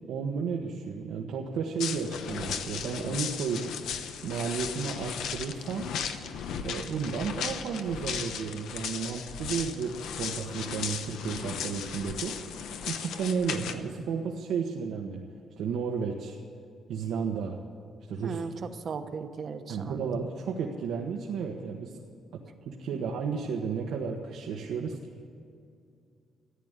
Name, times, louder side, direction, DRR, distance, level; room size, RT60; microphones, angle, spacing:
voice 1, 0.1-3.7 4.2-5.9 6.6-12.6 12.8-15.2 15.6-16.4 16.9-17.6 18.1-18.4 19.7-22.0 22.3-25.0, right 6 dB, 85° right, 0 dB, 1.3 m, -33 dB
sound 1, 1.8-13.7, left 7 dB, 85° left, 1.0 m, -36 dB
voice 2, 18.2-20.1, right 5 dB, 40° right, 8 dB, 1.0 m, -37 dB
14.5 x 10.5 x 8.2 m, 2.4 s
cardioid pair, 150°, 0 cm